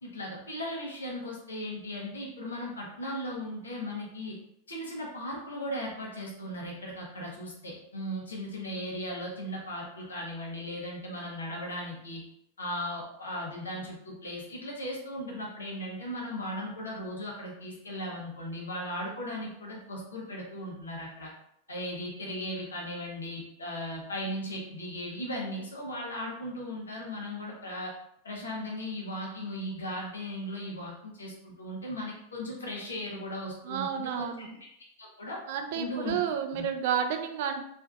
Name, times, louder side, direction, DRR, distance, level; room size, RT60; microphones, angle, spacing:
voice 1, 0.0-4.4 4.7-12.2 12.6-21.3 21.7-27.9 28.2-34.7 35.0-35.4 35.7-36.2 36.5-36.6, equal, 70° left, -2 dB, 1.0 m, -37 dB
voice 2, 33.6-34.5 35.5-37.6, right 8 dB, 50° right, 6 dB, 0.4 m, -31 dB
3.5 x 2.6 x 2.3 m, 0.76 s
figure-of-eight pair, 90°, 0 cm